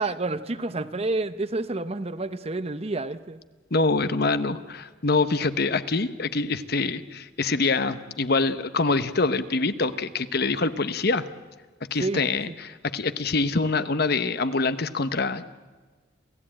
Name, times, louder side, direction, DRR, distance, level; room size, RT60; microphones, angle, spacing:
voice 1, 0.0-3.4 12.0-12.2, right 2 dB, 30° right, 12 dB, 0.7 m, -29 dB
voice 2, 3.7-11.3 11.9-15.4, left 3 dB, 55° left, 12 dB, 1.0 m, -25 dB
28.0 x 16.0 x 8.8 m, 1.4 s
head